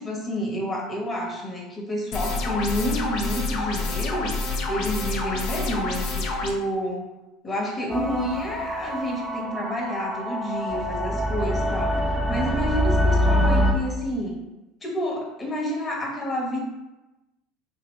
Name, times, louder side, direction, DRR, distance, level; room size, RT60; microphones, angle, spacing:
voice 1, 0.0-4.3 4.7-7.1 7.4-12.0 12.3-14.4 14.8-16.6, equal, 25° left, -2 dB, 1.0 m, -29 dB
sound 1, 2.1-6.5, left 3 dB, 60° left, 0.5 m, -28 dB
sound 2, 7.9-13.7, equal, 5° left, 0.5 m, -24 dB
2.9 x 2.7 x 3.1 m, 1.0 s
supercardioid pair, 90°, 0 cm